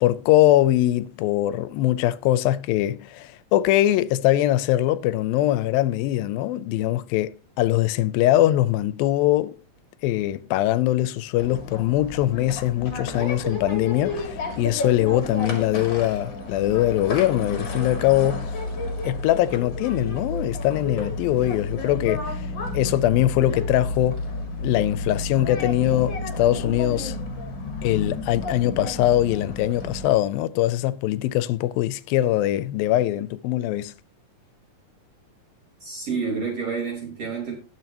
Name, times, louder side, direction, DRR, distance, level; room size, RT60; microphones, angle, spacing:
voice 1, 0.0-7.3 7.6-9.6 10.0-18.5 19.0-22.5 22.7-24.3 24.6-27.2 27.8-33.9, left 14 dB, 90° left, 2.4 m, -22 dB
sound 1, 11.4-30.1, left 2 dB, 40° left, 2.3 m, -31 dB
voice 2, 35.8-37.6, right 5 dB, 45° right, 4.1 m, -29 dB
18.5 x 6.4 x 2.9 m
omnidirectional pair, 4.1 m